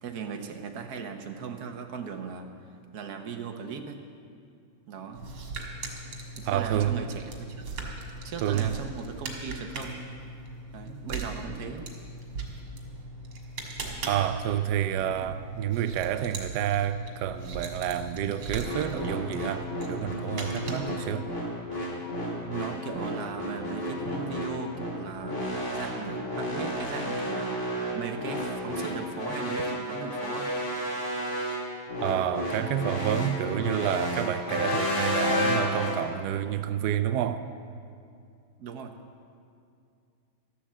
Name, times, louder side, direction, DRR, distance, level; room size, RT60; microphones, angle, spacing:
voice 1, 0.0-2.5 2.9-4.0 4.9-5.3 6.4-7.6 8.2-10.1 10.7-11.9 15.2-15.3 22.4-27.6 27.9-30.6 38.6-39.0, right 5 dB, 55° right, 1.3 m, -38 dB
sound 1, 5.1-21.2, right 2 dB, 70° right, 2.9 m, -39 dB
voice 2, 6.5-7.0 8.4-8.7 14.1-21.3 32.0-37.5, right 10 dB, 90° right, 0.9 m, -29 dB
sound 2, 18.6-35.9, equal, 35° left, 2.8 m, -31 dB
13.0 x 12.0 x 7.5 m
omnidirectional pair, 2.4 m